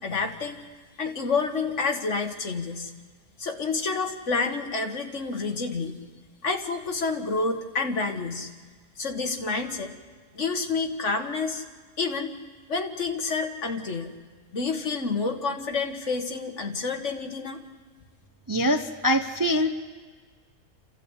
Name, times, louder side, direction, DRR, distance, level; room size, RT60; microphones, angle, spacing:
voice 1, 0.0-0.6 1.0-2.9 3.4-6.0 6.4-8.5 9.0-9.9 10.3-11.6 12.0-12.3 12.7-14.1 14.5-17.6, left 4 dB, 55° left, 4 dB, 1.9 m, -29 dB
voice 2, 18.5-19.7, equal, 20° right, 6 dB, 0.6 m, -23 dB
29.5 x 13.5 x 8.2 m, 1.5 s
omnidirectional pair, 1.5 m